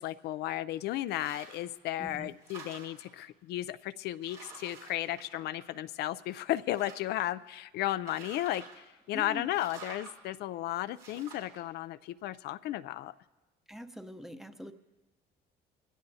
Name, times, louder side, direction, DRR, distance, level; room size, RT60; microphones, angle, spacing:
voice 1, 0.0-13.1, left 14 dB, 75° left, 14 dB, 0.4 m, -34 dB
sound 1, 1.1-1.7 2.1-3.2 3.8-3.9 4.2-5.9 6.3-7.2 7.9-8.9 9.5-10.1 10.9-11.6, right 5 dB, 90° right, 3.7 m, -50 dB
voice 2, 2.0-2.3 9.1-9.5 13.7-14.7, equal, ahead, 8 dB, 0.7 m, -43 dB
21.5 x 16.5 x 2.7 m, 1.2 s
cardioid pair, 110°, 17 cm